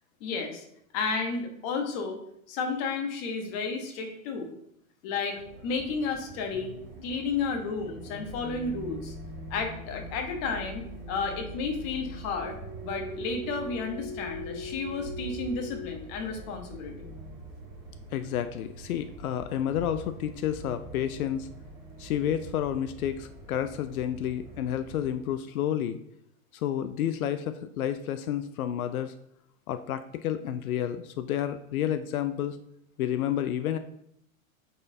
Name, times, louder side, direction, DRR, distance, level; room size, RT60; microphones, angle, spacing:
voice 1, 0.2-0.6 0.9-2.2 2.5-4.5 5.0-5.4 5.6-6.7 7.0-9.1 9.5-12.5 12.8-17.1, left 4 dB, 35° left, 3 dB, 1.1 m, -32 dB
sound 1, 5.4-25.1, right 1 dB, 5° right, 0.3 m, -42 dB
voice 2, 18.1-21.5 22.0-26.0 26.5-29.1 29.7-32.6 33.0-33.8, left 10 dB, 90° left, 10 dB, 0.6 m, -30 dB
8.7 x 4.2 x 2.7 m, 0.74 s
hypercardioid pair, 145°, 41 cm